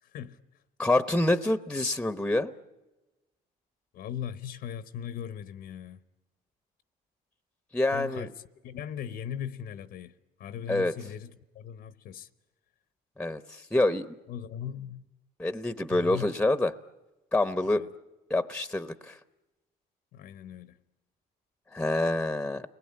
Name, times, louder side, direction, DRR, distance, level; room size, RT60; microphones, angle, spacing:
voice 1, 0.0-0.6 3.9-6.0 7.9-8.3 8.6-12.3 14.3-15.0 15.9-16.3 17.6-17.9 20.1-20.8, left 9 dB, 70° left, 1.0 m, -39 dB
voice 2, 0.8-2.5 7.7-8.3 10.7-10.9 13.2-14.2 15.4-16.7 17.3-17.9 18.3-19.2 21.7-22.6, left 2 dB, 5° left, 0.8 m, -26 dB
29.0 x 21.0 x 9.6 m
cardioid pair, 110°, 17 cm